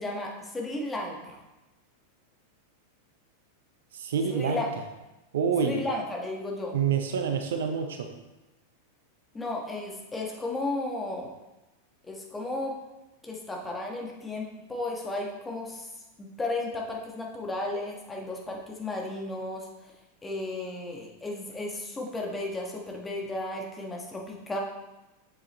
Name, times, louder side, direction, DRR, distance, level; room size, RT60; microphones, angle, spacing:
voice 1, 0.0-1.4 4.3-4.7 5.6-6.8 9.3-11.3 12.0-12.7 13.2-15.9 16.2-19.7 20.2-24.6, left 2 dB, 10° left, -1 dB, 1.6 m, -34 dB
voice 2, 3.9-4.6 5.3-5.8 6.7-8.1, right 6 dB, 60° right, 6 dB, 0.8 m, -27 dB
7.4 x 7.3 x 3.2 m, 1.0 s
figure-of-eight pair, 90°, 0 cm